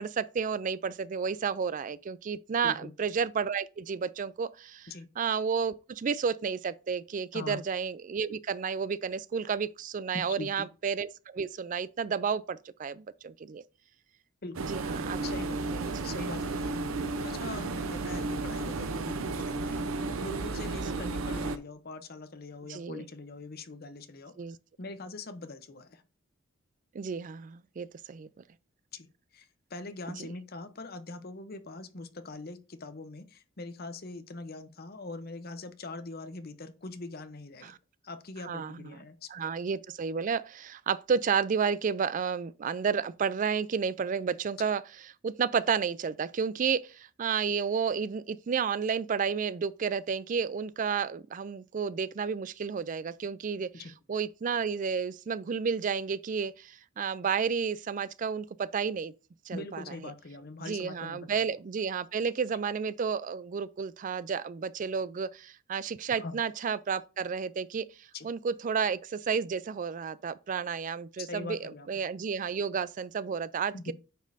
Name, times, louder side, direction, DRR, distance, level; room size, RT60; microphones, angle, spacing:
voice 1, 0.0-4.9 5.2-13.6 14.7-15.2 15.7-16.1 20.9-21.1 22.7-23.1 24.4-24.6 26.9-28.3 30.2-30.3 37.6-37.8 38.5-39.0 39.3-44.8 45.2-53.7 54.1-59.1 59.5-59.8 60.6-73.9, right 6 dB, 40° right, 0.3 m, -31 dB
voice 2, 10.1-10.7 14.4-14.6 15.2-15.6 16.0-16.9 17.2-19.9 20.2-24.3 24.8-26.0 28.9-29.1 29.3-37.7 38.0-39.3 44.6-44.7 53.7-53.9 59.5-61.5 66.2-66.4 68.1-68.3 71.2-72.1 73.7-73.9, left 3 dB, 45° left, 0.8 m, -42 dB
sound 1, 14.5-21.6, right 3 dB, 80° right, 0.7 m, -33 dB
8.9 x 5.2 x 2.6 m
head